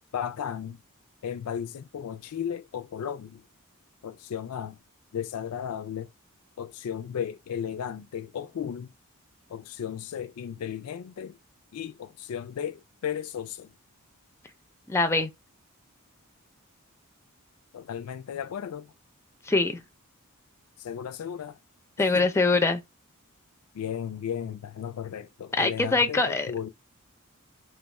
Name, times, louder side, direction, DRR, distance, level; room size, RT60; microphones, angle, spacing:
voice 1, 0.1-0.8 1.2-3.4 4.0-4.8 5.1-6.1 6.6-8.9 9.5-11.4 11.7-13.7 17.7-18.9 20.8-21.6 22.0-22.6 23.7-26.7, left 8 dB, 85° left, 0.4 m, -35 dB
voice 2, 14.9-15.3 19.4-19.8 22.0-22.8 25.6-26.5, left 3 dB, 10° left, 0.4 m, -23 dB
3.4 x 2.3 x 4.1 m
head